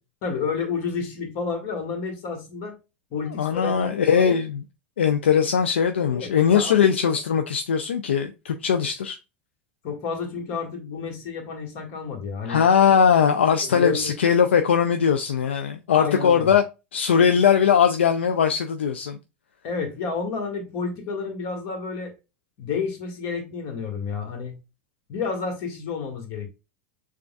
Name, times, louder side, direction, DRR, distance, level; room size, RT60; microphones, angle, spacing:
voice 1, 0.2-2.8 3.1-4.3 6.1-6.7 7.1-7.2 9.8-12.6 13.6-14.2 15.9-16.5 19.6-22.1 22.6-24.6 25.1-26.5, left 5 dB, 50° left, 1.5 m, -30 dB
voice 2, 3.4-4.6 5.0-9.2 12.4-16.6 16.9-19.2, left 7 dB, 75° left, 0.4 m, -20 dB
6.7 x 2.4 x 2.3 m
figure-of-eight pair, 85°, 6 cm